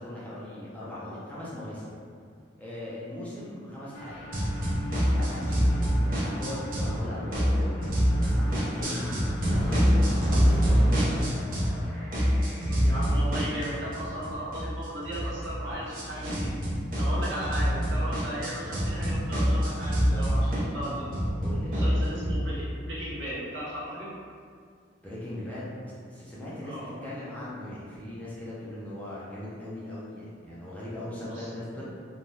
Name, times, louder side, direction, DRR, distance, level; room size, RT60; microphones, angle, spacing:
voice 1, 0.0-2.0 2.6-4.3 4.9-9.0 9.5-11.2 17.2-17.3 21.4-22.0 25.0-25.6 26.1-31.8, left 1 dB, 10° left, -9 dB, 0.4 m, -39 dB
sound 1, 3.9-13.2, equal, 65° left, 0.7 m, -44 dB
sound 2, 4.3-7.0 7.3-11.8 12.1-22.3, equal, 45° right, 0.6 m, -26 dB
voice 2, 12.7-16.5 17.0-21.0 21.7-24.1 26.6-26.9 31.3-31.5 31.8-31.9, right 1 dB, 70° right, -8 dB, 0.9 m, -36 dB
3.2 x 2.2 x 2.7 m, 2.2 s
head